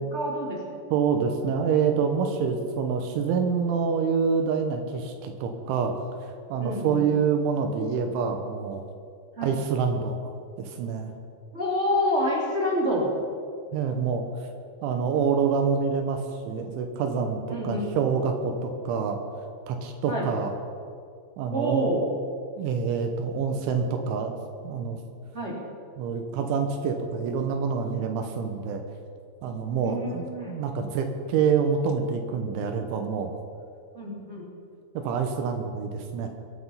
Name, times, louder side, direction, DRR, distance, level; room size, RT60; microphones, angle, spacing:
voice 1, 0.1-0.6 6.6-7.0 9.4-9.5 11.5-13.1 17.5-17.9 20.1-20.3 21.5-22.0 25.3-25.6 29.8-30.5 33.9-34.4, equal, 20° right, -4 dB, 2.3 m, -27 dB
voice 2, 0.9-5.9 6.2-8.8 9.4-11.1 13.7-14.5 14.8-19.2 19.7-20.5 21.4-21.9 22.6-24.3 24.6-25.0 26.0-28.8 29.4-33.4 34.9-36.3, right 6 dB, 85° right, 4 dB, 3.4 m, -27 dB
23.0 x 8.6 x 5.6 m, 2.3 s
omnidirectional pair, 5.4 m